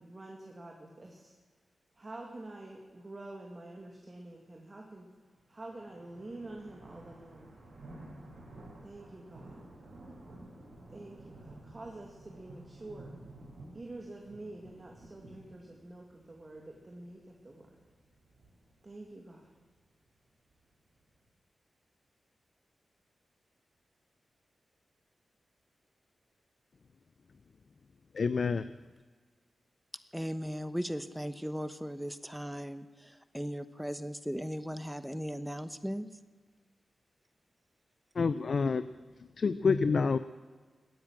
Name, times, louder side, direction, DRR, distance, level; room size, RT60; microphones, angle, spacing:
voice 1, 0.0-1.3 2.0-5.1 5.5-7.5 8.8-9.6 10.9-13.2 13.7-17.7 18.8-19.5, right 2 dB, 40° right, 0 dB, 2.5 m, -47 dB
sound 1, 5.4-21.3, right 2 dB, 85° right, 6.6 m, -53 dB
voice 2, 28.1-28.7 38.2-38.9 39.4-40.2, left 5 dB, 65° left, 13 dB, 0.5 m, -27 dB
voice 3, 30.1-36.1, equal, 5° right, 11 dB, 1.1 m, -37 dB
16.5 x 10.0 x 7.5 m, 1.4 s
cardioid pair, 50°, 0 cm